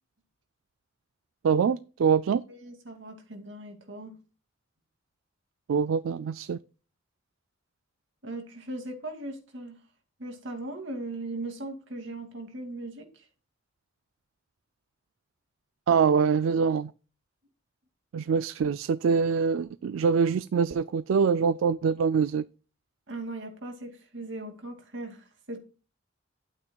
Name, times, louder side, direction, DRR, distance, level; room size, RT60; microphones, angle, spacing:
voice 1, 1.4-2.4 5.7-6.6 15.9-16.9 18.1-22.4, right 6 dB, 85° right, 0.4 m, -24 dB
voice 2, 2.5-4.1 8.2-9.8 10.2-13.3 23.1-25.6, right 2 dB, 65° right, 2.4 m, -39 dB
11.5 x 8.9 x 2.3 m
head